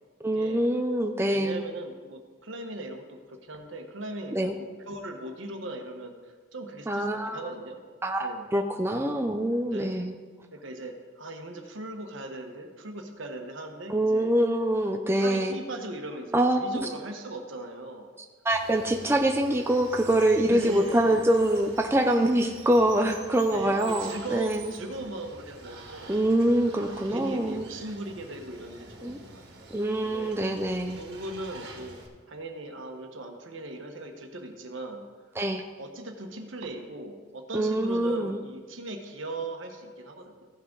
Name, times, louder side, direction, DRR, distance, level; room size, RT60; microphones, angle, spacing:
voice 1, 0.2-1.6 4.3-4.5 6.9-7.4 8.0-10.1 13.9-15.6 16.3-16.9 18.4-24.7 26.1-27.6 29.0-29.2 29.7-31.0 35.4-35.6 37.5-38.4, right 1 dB, 10° right, 3 dB, 0.4 m, -25 dB
voice 2, 1.3-7.8 8.2-8.4 9.6-10.1 10.5-14.3 15.2-18.1 18.9-19.1 20.4-21.5 23.5-26.2 26.8-29.6 30.0-30.6 30.9-32.0 32.3-35.1 35.8-40.5, right 2 dB, 70° right, 3 dB, 1.2 m, -39 dB
Water, 18.5-32.1, right 3 dB, 50° right, 1.7 m, -47 dB
16.0 x 6.2 x 3.9 m, 1.5 s
head